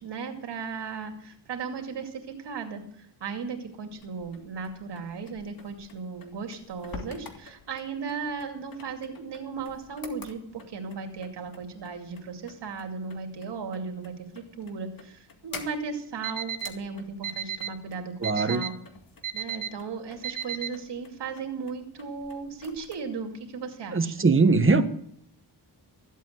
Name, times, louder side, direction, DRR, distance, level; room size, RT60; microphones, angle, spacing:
voice 1, 0.0-18.7 19.3-24.3, right 5 dB, 75° right, 4 dB, 2.5 m, -36 dB
sound 1, 3.9-23.0, left 4 dB, 55° left, 2.1 m, -49 dB
Alarm, 16.2-16.7 17.2-17.7 18.2-18.7 19.2-19.7 20.2-20.7, right 10 dB, 50° right, 1.1 m, -32 dB
voice 2, 18.2-18.6 23.9-24.8, right 3 dB, 30° right, 9 dB, 1.4 m, -21 dB
14.5 x 8.3 x 8.0 m, 0.68 s
cardioid pair, 95°, 42 cm